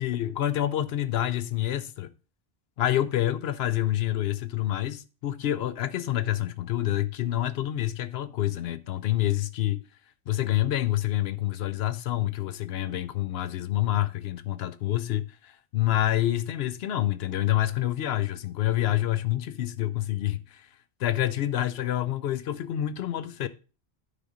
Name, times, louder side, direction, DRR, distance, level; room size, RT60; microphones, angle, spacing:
voice 1, 0.0-2.1 2.8-9.8 10.3-20.7 21.0-23.5, left 13 dB, 70° left, 0.8 m, -27 dB
9.9 x 3.8 x 5.0 m
omnidirectional pair, 1.2 m